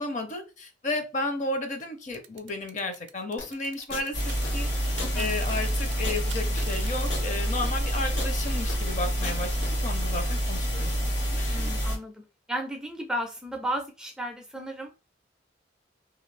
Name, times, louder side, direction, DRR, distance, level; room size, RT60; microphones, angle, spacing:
voice 1, 0.0-10.9 11.3-11.7, left 2 dB, 40° left, 6 dB, 0.6 m, -33 dB
sound 1, 2.1-4.5 4.7-7.2, right 11 dB, 80° right, 0.4 m, -44 dB
sound 2, 3.4-9.7, left 2 dB, 85° left, 1.0 m, -38 dB
sound 3, 4.1-12.0, equal, 70° left, 1.3 m, -28 dB
voice 2, 5.0-5.4 11.5-12.1 12.5-14.9, equal, 5° right, 2 dB, 0.4 m, -34 dB
2.5 x 2.3 x 3.2 m, 0.30 s
head